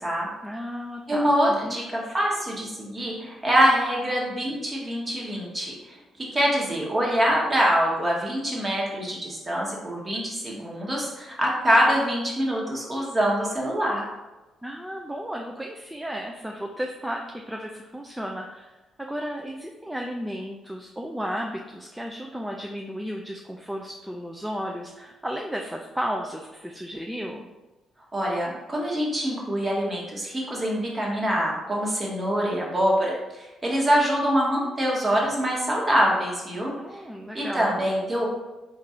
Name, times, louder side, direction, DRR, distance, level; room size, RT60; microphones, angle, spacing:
voice 1, 0.4-1.8 14.6-27.5 36.8-37.7, equal, 5° right, 1 dB, 0.4 m, -34 dB
voice 2, 1.1-5.7 6.2-14.0 28.1-36.7 37.3-38.3, equal, 25° right, -3 dB, 1.2 m, -24 dB
3.8 x 2.5 x 4.2 m, 1.1 s
cardioid pair, 90°, 0 cm